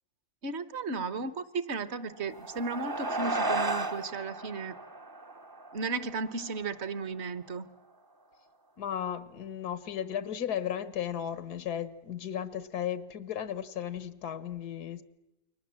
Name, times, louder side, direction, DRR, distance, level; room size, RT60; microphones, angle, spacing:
voice 1, 0.4-4.8 5.7-7.7, right 4 dB, 50° right, 14 dB, 1.3 m, -35 dB
sound 1, 2.1-6.9, right 2 dB, 20° right, 0.6 m, -34 dB
voice 2, 8.8-15.0, left 9 dB, 90° left, 14 dB, 1.6 m, -35 dB
29.0 x 23.0 x 7.5 m, 0.99 s
omnidirectional pair, 1.6 m